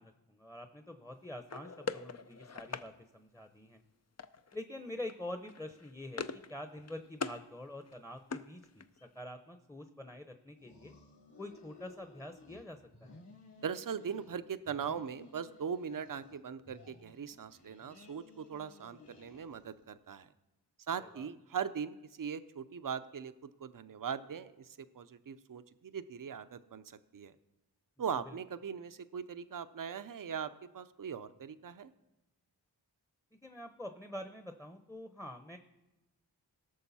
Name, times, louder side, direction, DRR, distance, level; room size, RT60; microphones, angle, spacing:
voice 1, 0.0-3.8 4.5-10.9 11.4-13.2 21.1-21.3 28.2-28.4 33.4-35.6, left 1 dB, 5° left, 7 dB, 0.9 m, -46 dB
sound 1, 1.5-2.9 4.2-4.6 4.9-5.1 5.4-6.5 6.8-7.4 7.8-9.1, left 5 dB, 40° left, 0.6 m, -42 dB
sound 2, 10.6-12.6 12.9-14.4 14.6-16.4 16.6-19.8, left 2 dB, 75° left, 2.5 m, -57 dB
voice 2, 13.6-20.3 20.9-23.3 23.6-27.3 28.0-31.9, right 7 dB, 50° right, 13 dB, 0.7 m, -40 dB
18.5 x 6.5 x 4.2 m, 0.98 s
cardioid pair, 40°, 42 cm